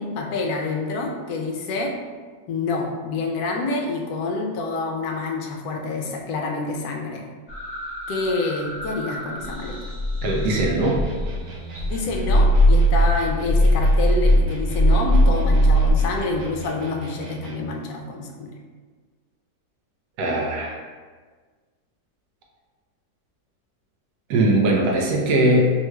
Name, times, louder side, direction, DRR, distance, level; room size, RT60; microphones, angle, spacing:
voice 1, 0.0-1.9 2.5-7.2 8.1-9.8 11.9-18.5, left 3 dB, 70° left, 1 dB, 0.9 m, -27 dB
sound 1, 7.5-11.4 11.7-15.9, equal, 35° left, 1.1 m, -20 dB
voice 2, 10.2-11.0 20.2-20.8 24.3-25.6, right 1 dB, 75° right, -1 dB, 1.1 m, -20 dB
sound 2, 10.8-17.8, right 4 dB, 90° right, 1.3 m, -38 dB
3.5 x 2.2 x 3.1 m, 1.5 s
omnidirectional pair, 1.9 m